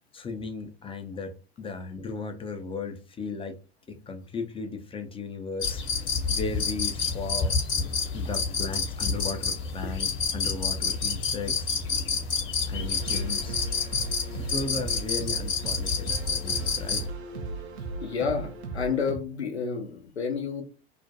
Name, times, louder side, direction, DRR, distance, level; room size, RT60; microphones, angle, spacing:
voice 1, 0.1-3.6 3.9-7.5 8.1-11.7 12.7-13.6 14.5-17.1, left 4 dB, 15° left, 0.4 m, -36 dB
sound 1, 5.6-17.1, left 5 dB, 40° left, 0.9 m, -29 dB
sound 2, 12.7-19.2, right 4 dB, 85° right, 0.5 m, -37 dB
voice 2, 18.0-20.6, left 5 dB, 90° left, 0.5 m, -30 dB
2.5 x 2.1 x 2.6 m
figure-of-eight pair, 70°, 32 cm